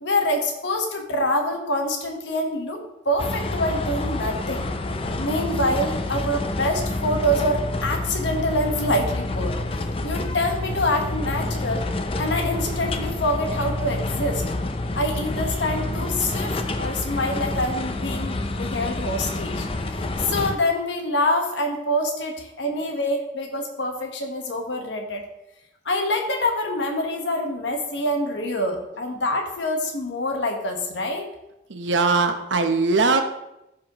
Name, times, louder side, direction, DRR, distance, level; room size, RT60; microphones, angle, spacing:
voice 1, 0.0-4.7 5.2-9.6 10.0-11.9 12.2-14.4 14.9-25.3 25.8-31.3, left 1 dB, 70° left, 3 dB, 1.3 m, -26 dB
sound 1, 3.2-20.6, left 2 dB, 30° left, 0.5 m, -28 dB
voice 2, 31.7-33.2, right 3 dB, 75° right, 7 dB, 0.9 m, -20 dB
14.5 x 5.2 x 3.0 m, 0.89 s
head